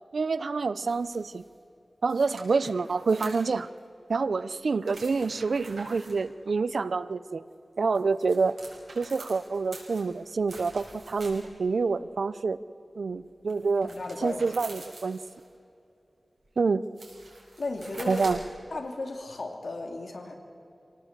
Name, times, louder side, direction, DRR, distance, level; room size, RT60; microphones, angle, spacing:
voice 1, 0.1-1.4 2.0-3.7 4.1-7.4 7.8-8.6 8.9-12.6 13.0-13.9 14.2-15.2 16.6-16.8 18.1-18.4, right 4 dB, 85° right, 15 dB, 0.6 m, -27 dB
sound 1, 0.9-1.5 2.1-3.8 4.8-6.2 7.7-11.7 13.5-15.5 16.5-16.6 16.8-18.6, right 2 dB, 70° right, 5.9 m, -47 dB
voice 2, 13.8-14.4 17.6-18.3 18.7-20.3, left 2 dB, 75° left, 3 dB, 2.9 m, -35 dB
26.0 x 18.5 x 7.4 m, 2.7 s
wide cardioid pair, 70°, 0 cm